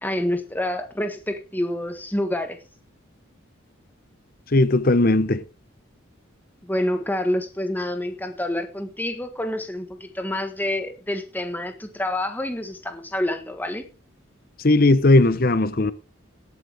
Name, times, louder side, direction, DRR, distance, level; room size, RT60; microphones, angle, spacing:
voice 1, 0.0-2.6 6.6-13.9, left 1 dB, 10° left, 1.4 m, -27 dB
voice 2, 4.5-5.4 14.6-15.9, left 2 dB, 45° left, 0.8 m, -17 dB
17.5 x 8.3 x 3.5 m
head